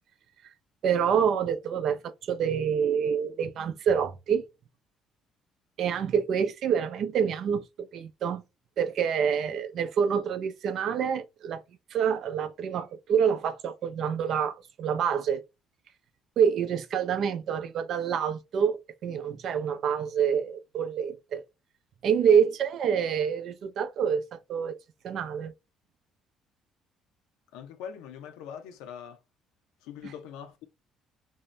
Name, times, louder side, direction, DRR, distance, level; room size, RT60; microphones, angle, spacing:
voice 1, 0.8-4.4 5.8-8.4 8.8-11.6 11.9-15.4 16.4-21.4 22.0-24.8 25.0-25.5, right 7 dB, 65° right, 0.5 m, -27 dB
voice 2, 27.5-29.2 29.8-30.6, left 8 dB, 90° left, 0.5 m, -42 dB
2.7 x 2.0 x 3.2 m
supercardioid pair, 80°, 0 cm